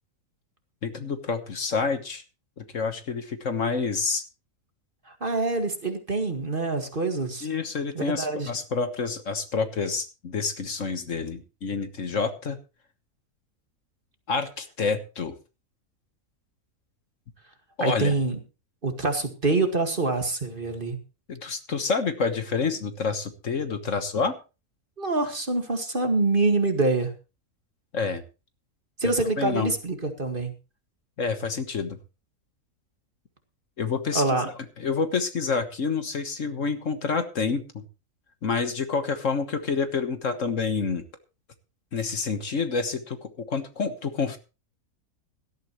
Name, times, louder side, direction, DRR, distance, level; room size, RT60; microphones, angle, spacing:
voice 1, 0.8-2.2 2.6-4.2 7.4-12.6 14.3-15.3 17.8-18.1 21.3-24.3 27.9-28.2 29.4-29.7 31.2-32.0 33.8-34.2 34.8-37.8 38.4-41.0 41.9-44.4, left 5 dB, 60° left, 9 dB, 1.6 m, -28 dB
voice 2, 5.1-7.5 7.9-8.5 17.8-18.4 18.8-21.0 25.0-27.1 29.0-30.5 34.1-34.5, right 3 dB, 35° right, 6 dB, 2.1 m, -25 dB
17.5 x 13.0 x 3.1 m, 0.31 s
omnidirectional pair, 1.6 m